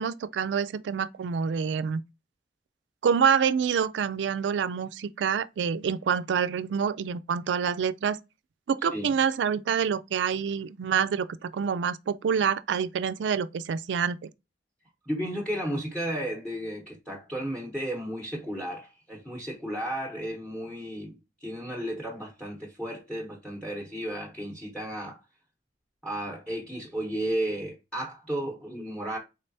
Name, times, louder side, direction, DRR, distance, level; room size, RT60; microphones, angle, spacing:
voice 1, 0.0-2.0 3.0-8.2 8.7-14.2, right 7 dB, 80° right, 0.4 m, -27 dB
voice 2, 15.1-25.2 26.0-29.2, right 1 dB, 5° left, 0.9 m, -33 dB
3.9 x 3.3 x 2.6 m
head